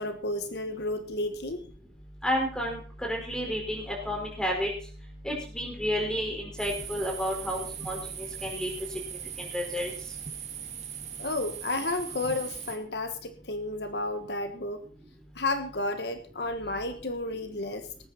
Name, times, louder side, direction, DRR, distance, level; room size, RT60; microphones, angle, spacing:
voice 1, 0.0-1.6 11.2-14.8 15.3-17.9, left 2 dB, 70° left, 8 dB, 1.4 m, -32 dB
voice 2, 2.2-4.7 5.2-8.0 8.4-8.7 9.4-9.9, equal, 5° left, -1 dB, 5.1 m, -31 dB
sound 1, 6.6-12.8, right 8 dB, 40° right, 2.0 m, -39 dB
19.0 x 9.4 x 4.4 m, 0.41 s
head